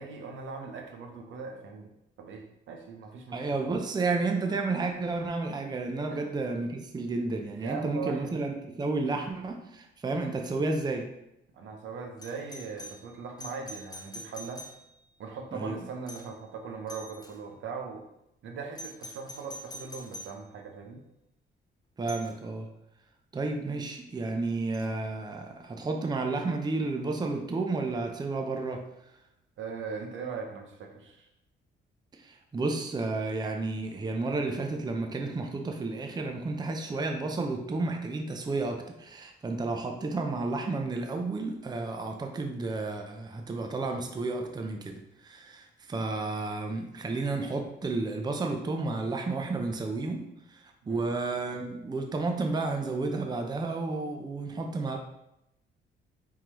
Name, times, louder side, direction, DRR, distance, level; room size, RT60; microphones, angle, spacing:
voice 1, 0.0-1.9 2.2-3.6 6.1-6.2 7.5-8.3 11.5-14.6 15.2-18.0 18.4-21.0 29.6-31.3 50.8-51.0, right 5 dB, 75° right, 3 dB, 0.8 m, -40 dB
voice 2, 3.3-11.1 15.5-15.8 22.0-22.7 23.3-28.8 32.2-55.0, right 3 dB, 20° right, 3 dB, 0.5 m, -32 dB
Doorbell, 12.2-15.2 16.1-16.4 16.9-17.4 18.7-20.4 22.1-22.3 24.7-24.9, left 1 dB, 20° left, 0.6 m, -45 dB
4.5 x 3.7 x 3.0 m, 0.84 s
cardioid pair, 90°, 20 cm